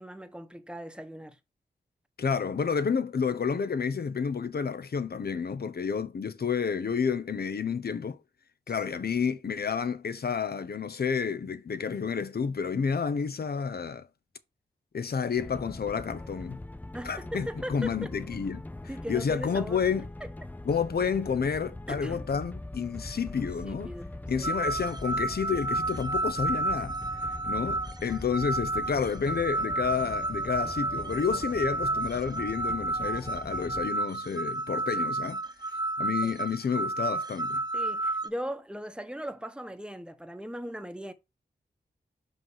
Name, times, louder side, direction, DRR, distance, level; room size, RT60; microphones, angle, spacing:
voice 1, 0.0-1.4 8.7-9.0 16.9-18.1 18.9-19.8 20.2-20.3 21.9-22.3 23.4-24.1 24.4-24.6 36.2-36.4 37.7-41.1, equal, 5° right, 1.0 m, -39 dB
voice 2, 2.2-8.2 8.7-14.1 14.9-16.6 17.0-18.6 19.1-20.1 20.6-23.9 24.3-27.0 27.5-35.4 36.0-37.6, left 6 dB, 65° left, 0.9 m, -30 dB
sound 1, 15.4-33.9, left 2 dB, 10° left, 0.4 m, -42 dB
sound 2, 24.4-38.3, right 2 dB, 25° right, 0.9 m, -31 dB
5.7 x 5.4 x 4.8 m
wide cardioid pair, 75°, 17 cm